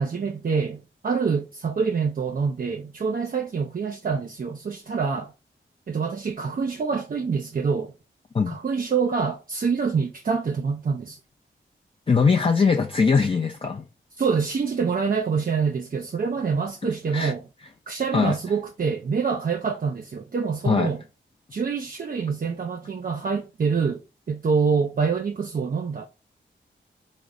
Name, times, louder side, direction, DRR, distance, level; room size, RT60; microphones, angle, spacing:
voice 1, 0.0-5.3 5.9-7.9 8.5-11.2 14.2-17.4 17.9-21.0 21.5-24.0 24.3-26.1, right 5 dB, 45° right, 0.5 m, -26 dB
voice 2, 12.1-13.8 17.1-17.3 18.1-18.4 20.6-20.9, left 5 dB, 25° left, 0.4 m, -21 dB
3.0 x 2.0 x 3.7 m
cardioid pair, 40°, 21 cm